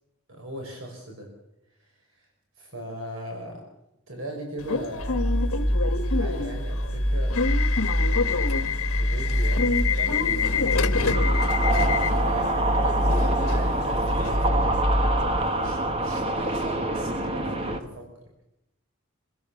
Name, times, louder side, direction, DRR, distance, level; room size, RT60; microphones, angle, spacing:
voice 1, 0.3-1.3 1.8-2.3 2.6-3.6 4.1-5.4 6.1-7.4 8.1-8.5 8.9-10.7 11.6-12.6 12.8-18.2, right 1 dB, 65° right, 1 dB, 5.3 m, -39 dB
Subway metro underground / Alarm, 4.6-14.4, left 5 dB, 80° left, 1.4 m, -28 dB
sound 1, 5.0-15.2, equal, 25° left, 4.9 m, -26 dB
sound 2, 10.9-17.8, right 2 dB, 25° right, 1.7 m, -26 dB
26.0 x 17.0 x 7.1 m, 0.87 s
head